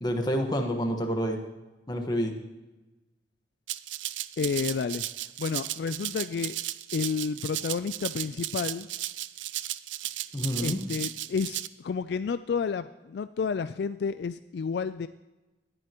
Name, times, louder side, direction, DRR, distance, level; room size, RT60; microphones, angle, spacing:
voice 1, 0.0-1.4 1.9-2.3 10.3-10.8, equal, 20° left, 3 dB, 1.3 m, -28 dB
Rattle (instrument), 3.7-11.7, right 14 dB, 85° right, 0.5 m, -35 dB
voice 2, 4.4-5.0 5.4-6.6 6.9-8.9 10.6-15.1, left 5 dB, 60° left, 12 dB, 0.3 m, -30 dB
19.5 x 11.0 x 3.0 m, 1.1 s
head